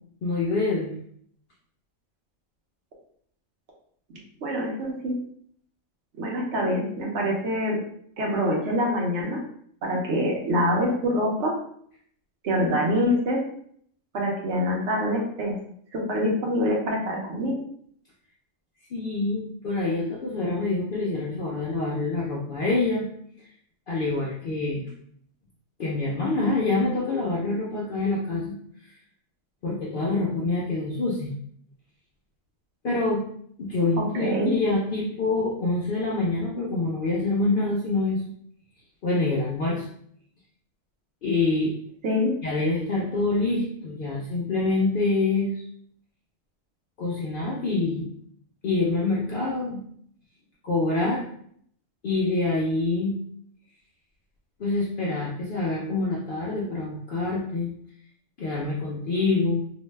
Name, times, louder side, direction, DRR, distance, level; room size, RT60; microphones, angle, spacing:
voice 1, 0.2-0.9 18.9-23.1 23.9-24.9 25.8-28.5 29.6-31.3 32.8-33.2 33.6-38.2 39.0-39.8 41.2-41.7 42.4-45.6 47.0-48.1 48.6-49.8 50.6-51.2 52.0-53.1 54.6-57.7 58.4-59.6, left 3 dB, 60° left, -4 dB, 0.5 m, -26 dB
voice 2, 4.4-5.1 6.2-7.8 8.2-9.4 9.8-11.5 12.4-13.4 14.1-15.5 15.9-17.6 34.0-34.5 42.0-42.3, equal, 65° right, -1 dB, 0.9 m, -25 dB
2.7 x 2.1 x 3.1 m, 0.65 s
omnidirectional pair, 1.3 m